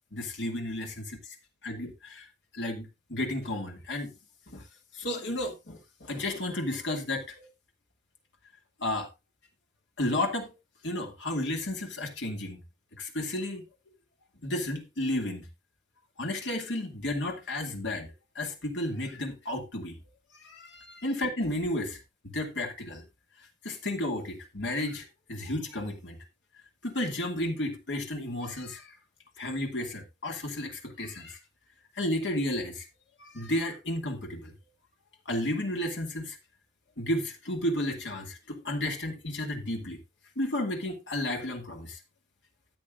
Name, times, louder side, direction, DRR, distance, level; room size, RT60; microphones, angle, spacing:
voice 1, 0.1-1.2 1.6-2.3 2.5-4.1 4.5-4.6 4.9-7.5 8.8-9.1 10.0-10.5 10.8-12.6 13.0-13.6 14.4-15.5 16.2-20.0 20.4-22.0 22.2-23.0 23.6-26.2 26.8-28.9 29.4-31.4 32.0-32.9 33.2-34.5 35.3-36.4 37.0-40.0 40.4-42.0, left 1 dB, 85° left, 2.4 m, -32 dB
13.5 x 8.9 x 2.5 m
head